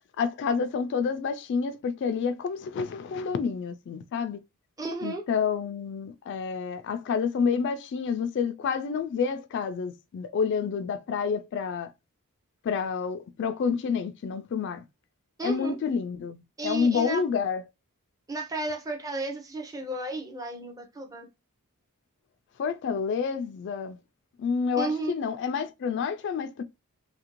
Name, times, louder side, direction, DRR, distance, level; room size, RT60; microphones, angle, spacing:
voice 1, 0.2-4.4 5.0-11.9 12.6-14.8 15.4-17.6 22.6-24.0 24.4-26.6, left 6 dB, 55° left, 0.3 m, -29 dB
voice 2, 4.8-5.2 15.4-15.7 16.6-17.2 18.3-21.3 24.8-25.1, right 2 dB, 15° right, 0.5 m, -33 dB
2.8 x 2.5 x 2.9 m
head